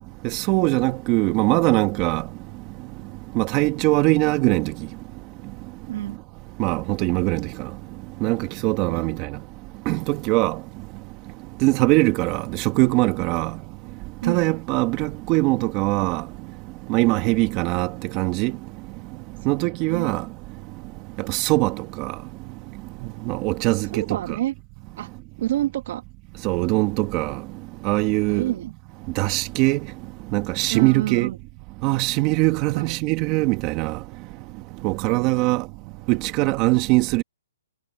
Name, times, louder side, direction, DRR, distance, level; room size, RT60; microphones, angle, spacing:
voice 1, 0.2-2.2 3.4-4.7 6.6-7.5 8.2-9.3 9.9-10.6 11.6-13.5 14.3-16.2 16.9-18.5 19.5-20.2 21.3-22.1 23.3-24.0 26.4-27.4 27.8-28.5 29.2-29.8 30.3-31.3 31.8-34.0 34.8-35.6 36.1-37.2, right 21 dB, 25° right, 1.9 m, -21 dB
voice 2, 14.2-14.6 19.5-20.1 23.9-24.5 25.0-25.1 25.4-26.0 28.3-28.7 30.7-31.4 32.5-32.9 35.0-35.6, right 13 dB, 45° right, 2.0 m, -29 dB
hypercardioid pair, 160°, 0 cm